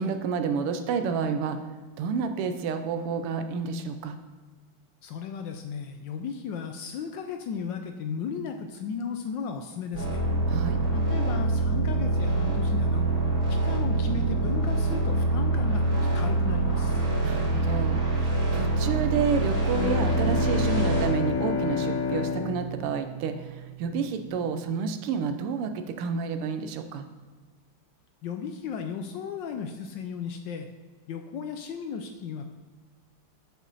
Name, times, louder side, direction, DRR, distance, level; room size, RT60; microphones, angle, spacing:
voice 1, 0.0-1.6 2.0-4.2 10.5-10.8 17.2-27.1, right 5 dB, 85° right, 8 dB, 1.6 m, -30 dB
voice 2, 5.0-10.2 10.9-13.1 13.5-17.0 28.2-30.7 31.1-32.6, left 6 dB, 75° left, 6 dB, 1.1 m, -35 dB
sound 1, 9.9-21.0, right 2 dB, 40° right, 2.8 m, -25 dB
Bowed string instrument, 19.6-24.1, left 5 dB, 55° left, 1.1 m, -30 dB
7.9 x 6.4 x 4.0 m, 1.4 s
omnidirectional pair, 2.4 m